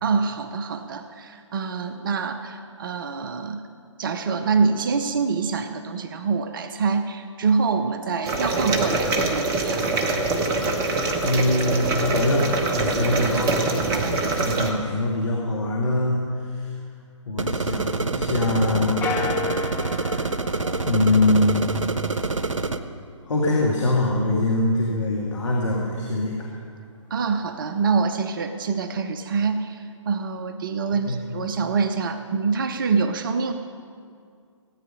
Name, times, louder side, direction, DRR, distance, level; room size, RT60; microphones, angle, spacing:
voice 1, 0.0-3.7 4.0-9.8 13.9-14.1 27.1-33.5, right 5 dB, 40° right, 8 dB, 0.8 m, -25 dB
sound 1, 8.3-14.7, right 3 dB, 20° right, 1.0 m, -24 dB
voice 2, 11.2-13.6 14.1-16.8 17.3-19.1 20.8-21.7 23.3-26.4 31.0-31.2, left 2 dB, 65° left, -2 dB, 2.0 m, -23 dB
sound 2, 17.4-22.8, right 3 dB, 80° right, 0.8 m, -26 dB
sound 3, 19.0-21.7, left 4 dB, 10° left, 0.7 m, -32 dB
16.5 x 9.1 x 5.3 m, 2.3 s
figure-of-eight pair, 135°, 16 cm